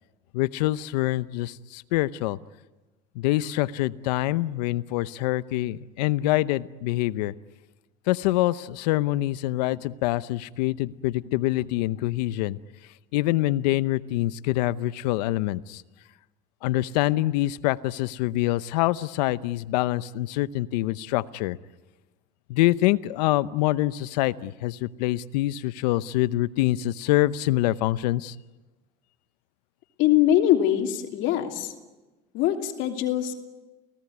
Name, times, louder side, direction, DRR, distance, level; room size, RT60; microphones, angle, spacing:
voice 1, 0.3-2.4 3.1-7.3 8.1-12.6 13.1-15.8 16.6-21.6 22.5-28.3, left 16 dB, 85° left, 17 dB, 0.8 m, -25 dB
voice 2, 30.0-31.7 32.3-33.3, left 12 dB, 70° left, 4 dB, 2.9 m, -22 dB
29.5 x 18.0 x 9.6 m, 1.2 s
supercardioid pair, 90°, 20 cm